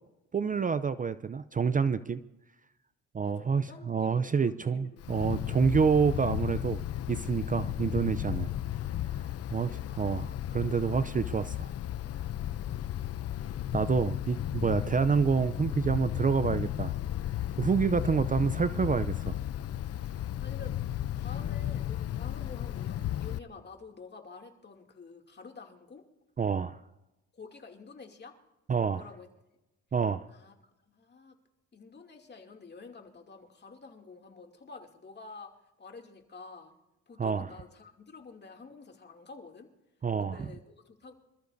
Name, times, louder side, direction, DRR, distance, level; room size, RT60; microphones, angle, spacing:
voice 1, 0.3-2.2 3.1-8.5 9.5-11.7 13.7-16.9 17.6-19.4 26.4-26.8 28.7-29.1 29.9-30.3 37.2-37.5 40.0-40.5, right 6 dB, 25° right, 13 dB, 0.5 m, -28 dB
voice 2, 3.2-5.1 8.5-8.6 9.9-10.6 12.5-13.8 18.0-18.2 20.0-20.7 21.1-26.0 27.3-28.4 28.9-29.3 30.3-31.3 31.7-35.5 35.8-36.7 37.1-39.7 40.2-41.1, left 4 dB, 35° left, 2 dB, 2.7 m, -49 dB
Wind, 5.0-23.4, left 12 dB, 55° left, 0.6 m, -34 dB
26.0 x 14.0 x 2.7 m, 0.93 s
cardioid pair, 90°, 30 cm